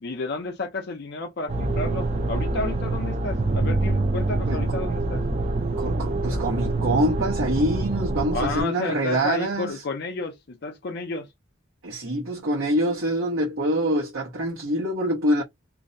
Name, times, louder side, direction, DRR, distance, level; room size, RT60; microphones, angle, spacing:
voice 1, 0.0-5.2 8.3-11.3, left 3 dB, 50° left, 0.5 m, -31 dB
sound 1, 1.5-8.6, right 2 dB, 30° right, 0.4 m, -25 dB
voice 2, 5.8-9.8 11.8-15.4, right 1 dB, 85° right, 0.9 m, -25 dB
2.5 x 2.1 x 2.5 m
head